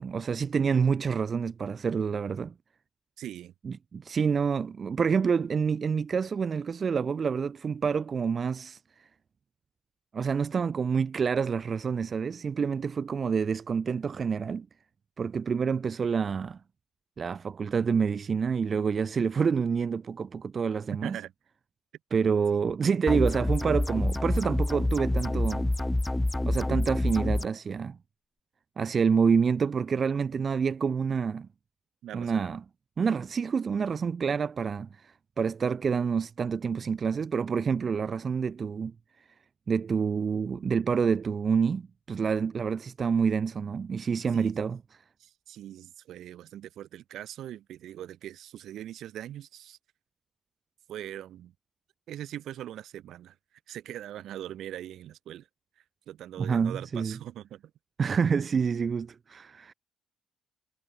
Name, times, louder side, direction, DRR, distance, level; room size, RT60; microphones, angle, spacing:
voice 1, 0.0-2.5 3.6-9.1 10.1-14.7 15.2-16.6 17.2-21.2 22.1-25.6 26.4-28.0 28.8-31.5 32.1-32.6 33.0-38.9 39.7-44.8 56.4-57.2 58.0-59.7, right 6 dB, 45° right, 1.4 m, -28 dB
voice 2, 3.2-3.5 21.0-21.3 32.0-32.4 44.3-44.5 45.2-49.8 50.9-51.5 52.1-53.4 53.7-55.5 56.1-57.6, right 12 dB, 75° right, 4.7 m, -41 dB
sound 1, 23.1-27.5, left 1 dB, 10° left, 0.7 m, -27 dB
cardioid pair, 90°, 0 cm